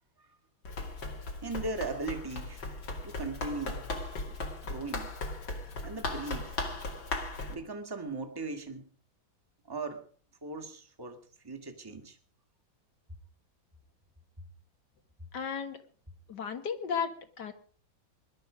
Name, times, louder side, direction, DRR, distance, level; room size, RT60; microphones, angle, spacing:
Run, 0.6-7.6, left 2 dB, 80° left, 3.3 m, -37 dB
voice 1, 1.4-2.8 3.0-3.9 4.6-5.1 5.8-6.6 7.5-8.9 9.7-10.0 10.4-12.2, right 3 dB, 10° right, 5 dB, 1.8 m, -38 dB
voice 2, 15.3-15.8 16.3-17.5, left 6 dB, 60° left, 8 dB, 2.1 m, -34 dB
20.5 x 11.5 x 5.1 m, 0.43 s
omnidirectional pair, 2.1 m